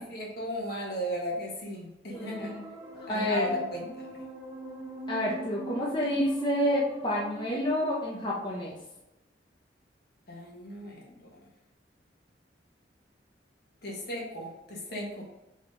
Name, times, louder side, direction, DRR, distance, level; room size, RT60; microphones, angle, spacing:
voice 1, 0.0-2.5 3.1-4.1 10.3-11.4 13.8-15.2, equal, 60° left, -2 dB, 1.8 m, -35 dB
voice 2, 2.1-2.6 3.1-3.5 5.1-8.7, left 1 dB, 25° left, -4 dB, 0.9 m, -29 dB
sound 1, 2.1-7.4, right 2 dB, 10° right, 1.1 m, -42 dB
5.3 x 5.0 x 3.9 m, 0.95 s
head